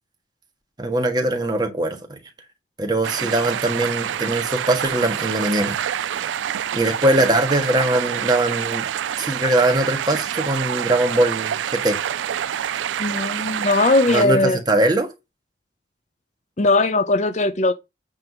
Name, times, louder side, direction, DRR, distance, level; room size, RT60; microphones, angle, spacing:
voice 1, 0.8-2.2 2.8-6.1 6.7-8.8 9.2-12.0 14.1-15.1, right 1 dB, 25° right, 1.6 m, -21 dB
sound 1, 3.0-14.3, right 9 dB, 85° right, 0.4 m, -27 dB
voice 2, 13.0-14.6 16.6-17.7, left 2 dB, 40° left, 0.7 m, -19 dB
8.9 x 3.6 x 6.1 m
head